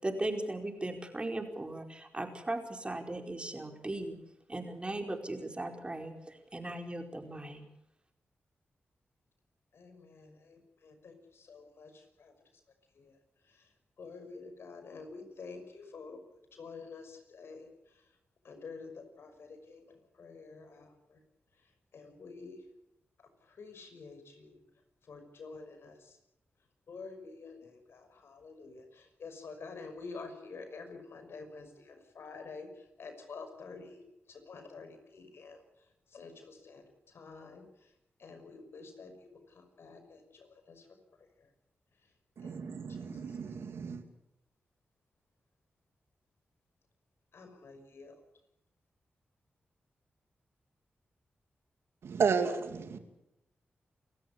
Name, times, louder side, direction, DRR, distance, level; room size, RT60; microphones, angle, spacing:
voice 1, 0.0-4.2 4.5-7.6, right 1 dB, 25° right, 4 dB, 4.8 m, -37 dB
voice 2, 9.7-12.3 13.0-13.1 14.0-16.2 16.5-17.7 18.4-19.8 20.2-21.2 21.9-22.6 23.6-24.6 25.1-26.2 26.9-32.7 33.0-34.0 34.3-35.6 36.1-36.8 37.1-37.6 38.2-39.3 39.5-40.9 42.4-42.6 43.1-43.4 47.3-48.2, left 4 dB, 75° left, 6 dB, 5.8 m, -48 dB
voice 3, 42.4-44.0 52.0-53.0, right 6 dB, 80° right, 8 dB, 2.4 m, -32 dB
28.5 x 13.5 x 8.6 m, 0.86 s
cardioid pair, 60°, 4 cm